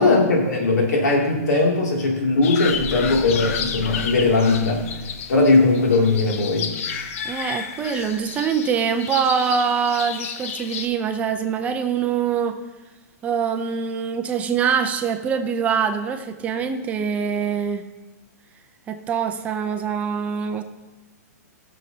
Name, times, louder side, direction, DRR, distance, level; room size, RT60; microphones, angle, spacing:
voice 1, 0.0-4.9 5.3-6.7, left 3 dB, 85° left, -1 dB, 2.6 m, -19 dB
sound 1, 2.4-10.9, left 7 dB, 55° left, 0.7 m, -32 dB
sound 2, 2.7-7.8 8.0-8.3, right 2 dB, 5° left, 2.3 m, -39 dB
voice 2, 7.2-12.6 13.2-17.9 18.9-20.6, right 7 dB, 15° right, 8 dB, 0.5 m, -24 dB
15.5 x 6.6 x 2.8 m, 1.2 s
hypercardioid pair, 155°, 9 cm